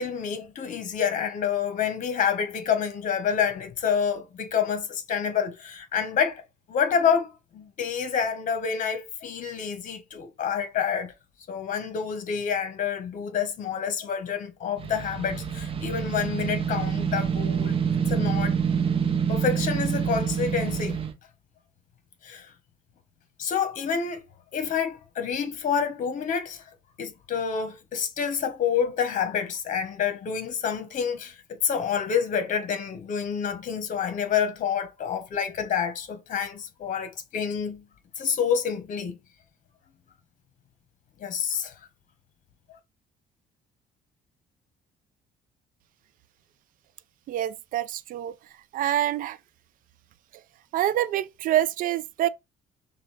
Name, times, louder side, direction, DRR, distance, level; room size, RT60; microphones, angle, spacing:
voice 1, 0.0-6.4 6.7-11.1 11.5-17.8 18.1-18.5 19.3-21.0 22.2-22.5 23.4-24.3 24.5-26.6 27.0-37.9 38.2-39.2 41.2-41.7, left 7 dB, 50° left, 1.2 m, -28 dB
sound 1, 14.8-21.1, right 7 dB, 35° right, 0.8 m, -27 dB
voice 2, 47.3-48.3 48.7-49.4 50.7-52.3, right 12 dB, 55° right, 0.4 m, -26 dB
6.0 x 2.4 x 3.3 m
cardioid pair, 110°, 17 cm